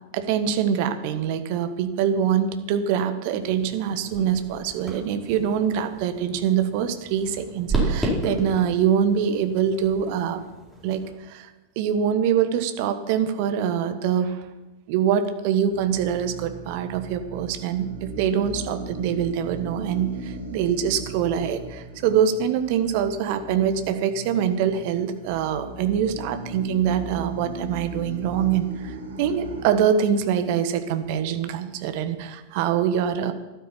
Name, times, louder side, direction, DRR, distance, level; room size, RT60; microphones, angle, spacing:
voice 1, 0.1-10.4 10.8-11.5 11.8-14.4 14.9-33.3, right 8 dB, 45° right, 9 dB, 1.3 m, -24 dB
sound 1, 3.4-11.1, right 2 dB, 5° right, 4.5 m, -32 dB
sound 2, 15.7-29.7, right 2 dB, 70° right, 2.6 m, -38 dB
13.5 x 12.0 x 5.8 m, 1.1 s
figure-of-eight pair, 90°, 0 cm